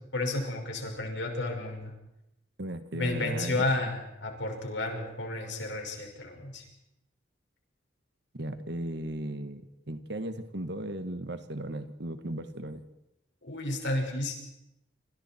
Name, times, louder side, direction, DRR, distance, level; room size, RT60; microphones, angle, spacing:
voice 1, 0.1-1.9 2.9-6.6 13.4-14.3, left 2 dB, 75° left, 2 dB, 5.7 m, -32 dB
voice 2, 2.6-3.7 8.3-12.8, right 1 dB, 65° right, 9 dB, 1.7 m, -36 dB
27.0 x 26.0 x 4.5 m, 0.87 s
head